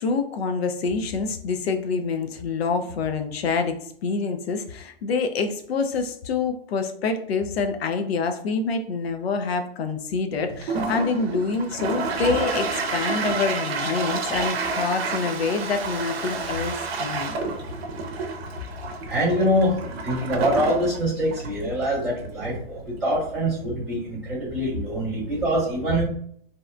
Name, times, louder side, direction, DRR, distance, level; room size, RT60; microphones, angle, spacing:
voice 1, 0.0-17.4, left 4 dB, 85° left, 7 dB, 0.5 m, -26 dB
Toilet flush, 10.5-23.6, right 3 dB, 90° right, 0.6 m, -30 dB
voice 2, 19.0-26.0, equal, ahead, -16 dB, 0.4 m, -24 dB
2.8 x 2.1 x 2.4 m, 0.65 s
hypercardioid pair, 175°, 30 cm